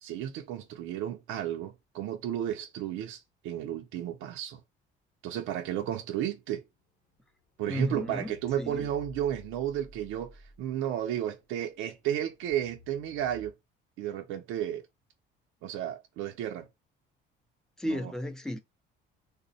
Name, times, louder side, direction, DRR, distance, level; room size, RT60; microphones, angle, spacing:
voice 1, 0.0-4.6 5.2-6.6 7.6-13.5 14.0-14.9 15.6-16.7 17.9-18.1, right 11 dB, 75° right, 0.5 m, -33 dB
sound 1, 6.7-7.3 7.9-10.8 11.2-13.5, left 1 dB, 35° left, 0.8 m, -53 dB
voice 2, 7.7-8.9 17.8-18.6, left 1 dB, 5° left, 0.4 m, -34 dB
3.4 x 2.0 x 3.9 m
cardioid pair, 170°, 20 cm